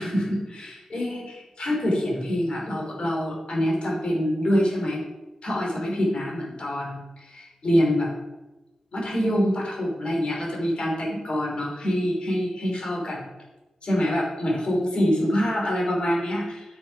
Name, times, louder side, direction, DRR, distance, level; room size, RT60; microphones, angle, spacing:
voice 1, 0.0-5.0 5.4-8.1 8.9-13.3 13.8-16.6, equal, 50° left, -2 dB, 3.3 m, -25 dB
9.8 x 6.3 x 4.7 m, 1.1 s
wide cardioid pair, 160°, 2 cm